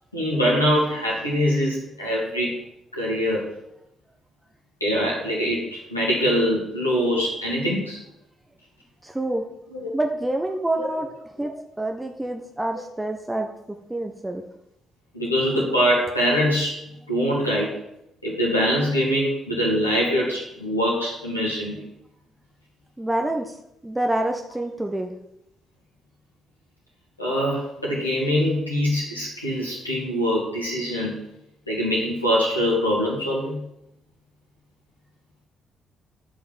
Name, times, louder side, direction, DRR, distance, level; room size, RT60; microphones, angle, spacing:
voice 1, 0.1-2.6 2.9-3.5 4.8-8.0 9.7-9.9 10.7-10.9 11.4-11.5 15.1-16.8 17.1-17.8 18.2-21.9 27.2-31.2 31.7-33.6, equal, 85° left, -5 dB, 2.7 m, -23 dB
voice 2, 9.0-9.4 9.9-11.1 11.4-11.5 11.8-13.5 13.9-14.4 23.0-23.4 23.8-25.1, right 1 dB, 10° right, 3 dB, 1.3 m, -26 dB
10.0 x 5.8 x 7.3 m, 0.80 s
figure-of-eight pair, 45°, 0 cm